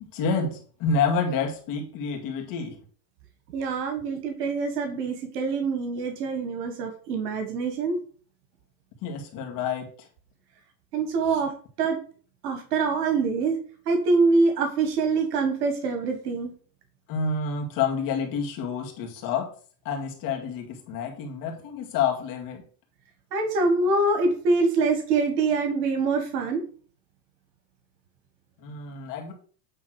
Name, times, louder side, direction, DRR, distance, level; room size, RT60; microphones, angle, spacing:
voice 1, 0.0-2.8 9.0-10.1 11.3-11.4 17.1-19.5 19.8-22.6 28.6-29.3, left 5 dB, 45° left, 0 dB, 2.2 m, -28 dB
voice 2, 3.5-8.0 10.9-11.5 11.8-12.0 12.4-13.6 13.8-16.5 23.3-26.6, right 3 dB, 90° right, 5 dB, 1.6 m, -24 dB
8.7 x 3.4 x 6.2 m, 0.43 s
supercardioid pair, 135°, 45 cm